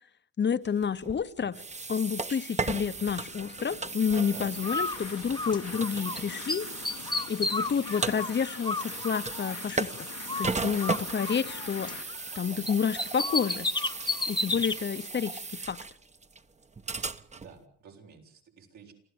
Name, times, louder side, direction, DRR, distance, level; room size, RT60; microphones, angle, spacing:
voice 1, 0.4-1.6 1.9-6.7 7.3-10.1 10.4-13.7 14.3-15.8, left 7 dB, 35° left, 0.9 m, -30 dB
sound 1, 0.8-17.6, right 3 dB, 25° right, 1.1 m, -36 dB
sound 2, 2.8-12.0, left 13 dB, 90° left, 1.4 m, -46 dB
Bird, 4.6-6.2 6.5-9.9 10.3-12.4 12.7-14.8, left 3 dB, 15° left, 1.0 m, -33 dB
voice 2, 17.3-18.9, right 6 dB, 70° right, 7.3 m, -52 dB
28.0 x 15.5 x 7.9 m
cardioid pair, 90°, 30 cm